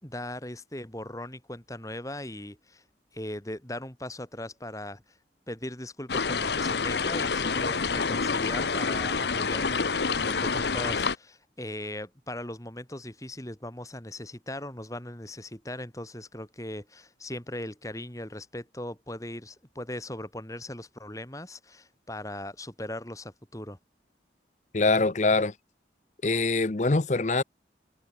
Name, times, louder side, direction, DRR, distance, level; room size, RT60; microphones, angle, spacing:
voice 1, 0.0-2.8 3.1-5.2 5.5-23.8, left 1 dB, 20° left, 4.0 m, -39 dB
sound 1, 6.1-11.2, left 5 dB, 70° left, 1.0 m, -27 dB
voice 2, 24.7-25.5 26.2-27.4, left 3 dB, 40° left, 0.7 m, -24 dB
head